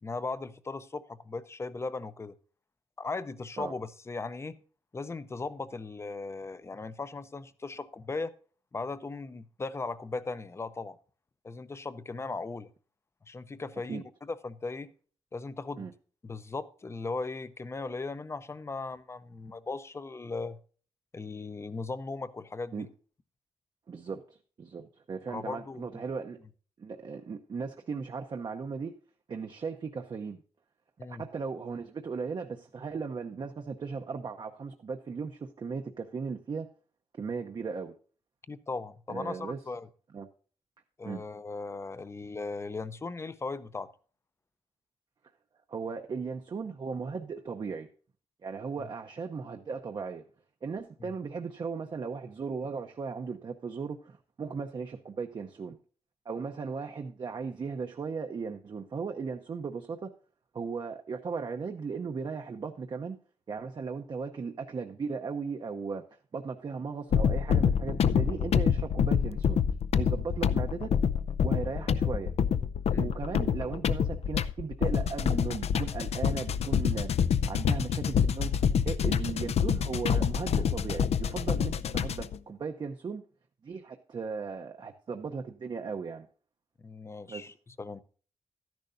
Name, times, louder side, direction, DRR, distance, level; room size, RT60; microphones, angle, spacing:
voice 1, 0.0-2.3 3.0-4.6 4.9-8.3 8.7-11.0 11.4-12.7 13.3-14.9 15.3-15.9 16.2-20.6 21.1-22.9 25.3-26.0 31.0-31.2 38.5-39.9 41.0-43.9 48.8-48.9 51.0-51.1 72.9-73.1 86.8-88.0, left 3 dB, 25° left, 15 dB, 0.6 m, -38 dB
voice 2, 23.9-26.4 26.8-28.9 29.3-30.4 31.1-36.7 37.2-37.9 39.1-39.6 40.1-40.3 41.0-41.2 45.7-47.9 48.4-50.2 50.6-55.8 56.2-60.1 60.5-63.2 63.5-66.0 66.3-69.6 69.9-70.9 71.4-72.3 73.0-77.1 77.5-83.2 83.6-86.3 87.3-87.5, right 5 dB, 40° right, 5 dB, 0.7 m, -37 dB
sound 1, 67.1-82.4, left 7 dB, 70° left, 0.5 m, -27 dB
13.0 x 10.5 x 2.6 m, 0.42 s
wide cardioid pair, 175°, 11 cm